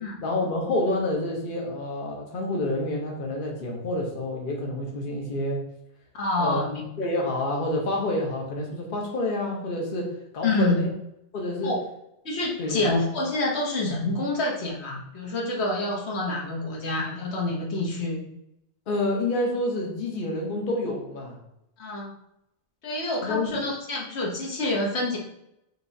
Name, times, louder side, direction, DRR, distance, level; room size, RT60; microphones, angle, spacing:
voice 1, 0.2-5.6 6.4-6.6 7.0-10.9 11.3-11.7 12.6-12.9 18.9-21.4 23.2-23.5, left 1 dB, 50° left, -1 dB, 0.9 m, -28 dB
voice 2, 6.1-6.8 10.4-10.8 11.6-11.8 12.2-18.2 21.8-22.1 22.8-25.2, left 2 dB, 70° left, -1 dB, 1.2 m, -27 dB
5.7 x 2.9 x 2.6 m, 0.80 s
omnidirectional pair, 1.2 m